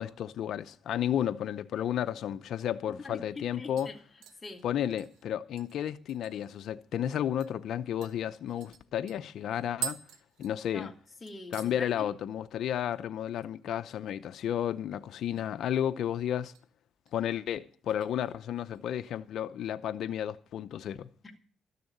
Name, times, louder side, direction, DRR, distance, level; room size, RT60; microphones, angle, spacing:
voice 1, 0.0-3.9 4.6-10.0 10.4-10.9 11.5-16.5 17.1-21.1, left 10 dB, 70° left, 0.7 m, -32 dB
sound 1, 2.8-2.9 3.1-3.5 3.8-6.6 6.9-7.0 7.4-7.6 8.0-11.0 11.3-11.8 12.1-12.5 12.8-12.9 15.0-15.6 15.9-16.7 17.1-17.3 17.9-18.8 19.2-19.3, right 10 dB, 90° right, 1.2 m, -45 dB
voice 2, 3.0-4.0 4.4-4.6 10.7-10.9 11.2-12.1 21.2-21.4, left 3 dB, 20° left, 2.6 m, -43 dB
13.0 x 6.9 x 9.3 m
cardioid pair, 90°, 0 cm